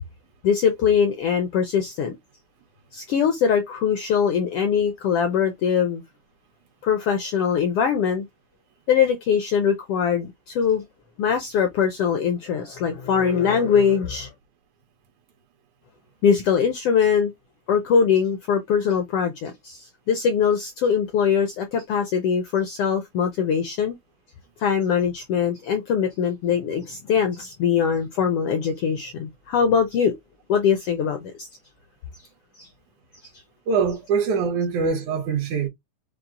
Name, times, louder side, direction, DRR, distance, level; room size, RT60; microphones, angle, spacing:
voice 1, 0.4-2.2 2.9-6.0 6.8-8.3 8.9-10.8 11.2-14.3 16.2-17.3 17.7-24.0 24.6-30.1 30.5-31.5 32.6-32.7, left 7 dB, 75° left, 1.3 m, -22 dB
voice 2, 33.7-35.7, right 5 dB, 80° right, 2.5 m, -23 dB
5.8 x 2.0 x 3.8 m
omnidirectional pair, 3.4 m